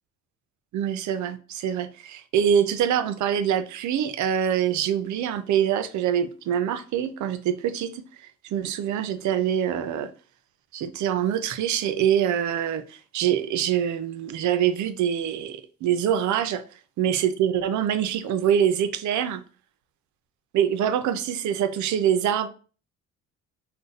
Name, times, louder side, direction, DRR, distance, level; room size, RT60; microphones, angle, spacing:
voice 1, 0.7-8.0 8.4-10.1 10.7-16.6 17.0-19.4 20.5-22.5, right 9 dB, 70° right, 0.5 m, -24 dB
2.5 x 2.1 x 3.8 m
cardioid pair, 90°, 30 cm